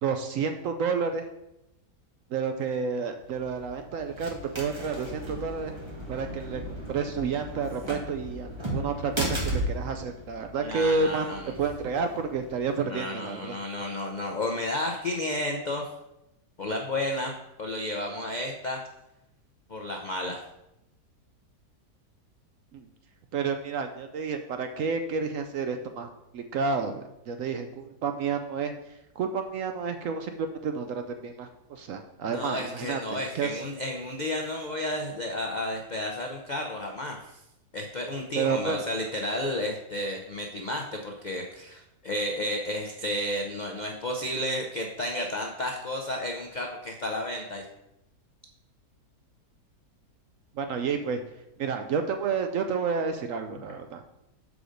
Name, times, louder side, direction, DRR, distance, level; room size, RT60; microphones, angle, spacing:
voice 1, 0.0-1.2 2.3-5.8 6.1-6.6 6.9-13.6 22.7-22.9 23.3-28.7 29.2-33.6 38.3-38.9 50.6-51.2 51.6-54.0, right 5 dB, 70° right, 6 dB, 0.8 m, -30 dB
sound 1, 3.2-12.8, equal, 20° right, 1.3 m, -36 dB
voice 2, 10.6-11.5 12.9-15.8 16.6-17.3 17.6-18.8 19.7-20.4 32.3-37.4 37.7-47.6, left 1 dB, 80° left, 2 dB, 0.4 m, -32 dB
6.4 x 4.9 x 5.0 m, 0.88 s
omnidirectional pair, 1.8 m